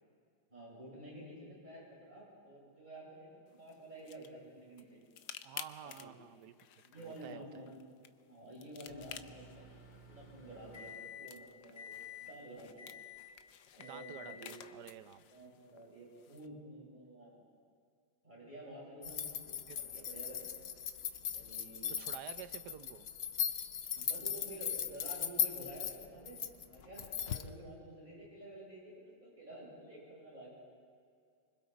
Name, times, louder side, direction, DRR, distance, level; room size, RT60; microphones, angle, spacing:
voice 1, 0.5-5.0 5.8-6.1 6.8-7.7 8.3-9.7 10.1-11.9 12.2-12.8 13.7-14.7 15.3-17.4 18.2-20.4 21.2-22.1 23.9-30.5, right 1 dB, 25° right, -5 dB, 7.6 m, -51 dB
sound 1, 3.5-16.5, left 10 dB, 85° left, 1.5 m, -54 dB
voice 2, 5.4-6.5 7.0-7.6 13.8-15.3 19.7-19.8 22.0-23.1, right 10 dB, 70° right, 12 dB, 1.3 m, -50 dB
Microwave oven, 8.9-11.4 11.8-12.3 12.8-13.4 13.8-14.4, left 7 dB, 30° left, 1.2 m, -51 dB
sound 2, 19.0-27.5, left 8 dB, 65° left, 0.6 m, -38 dB
26.5 x 25.0 x 4.2 m, 2.3 s
omnidirectional pair, 1.9 m